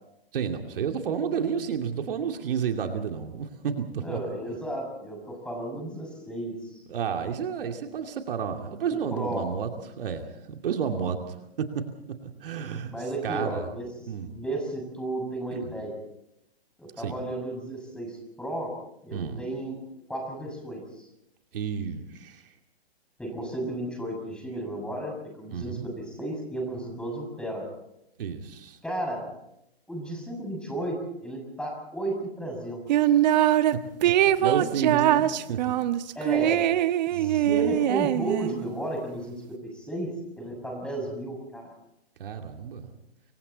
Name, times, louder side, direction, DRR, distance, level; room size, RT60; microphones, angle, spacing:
voice 1, 0.3-4.2 5.7-5.9 6.9-9.7 10.0-11.9 12.2-12.9 13.2-13.7 14.1-14.3 15.5-15.7 17.0-17.1 19.1-19.4 21.5-22.5 25.5-25.9 28.2-28.8 33.7-35.8 37.1-37.5 42.2-42.9, right 7 dB, 60° right, 4 dB, 2.7 m, -31 dB
voice 2, 4.0-6.8 8.9-9.5 12.9-16.0 16.8-18.7 19.0-19.8 20.1-21.1 23.2-27.7 28.8-29.3 29.9-33.2 36.1-36.7 37.1-40.1 40.4-41.7, right 1 dB, 5° left, 1 dB, 6.6 m, -34 dB
sound 1, 32.9-33.7 34.0-38.7, right 12 dB, 45° right, 1.2 m, -22 dB
28.5 x 24.0 x 4.2 m, 0.85 s
hypercardioid pair, 135°, 31 cm